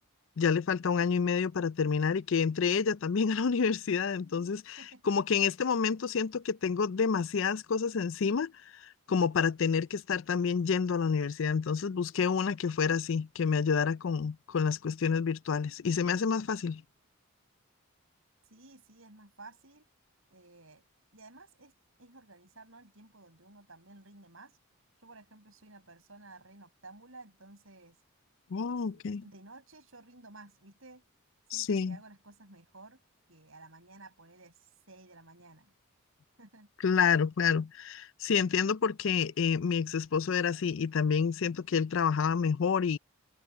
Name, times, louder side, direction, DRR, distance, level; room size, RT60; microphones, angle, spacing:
voice 1, 0.4-16.8 28.5-29.2 31.5-32.0 36.8-43.0, left 6 dB, 60° left, 0.4 m, -29 dB
voice 2, 4.8-5.1 18.4-19.8 20.3-20.8 21.1-21.7 22.0-24.6 25.0-28.0 28.5-31.0 31.5-33.0 33.3-35.7 36.4-36.7, right 2 dB, 65° right, 7.3 m, -54 dB
head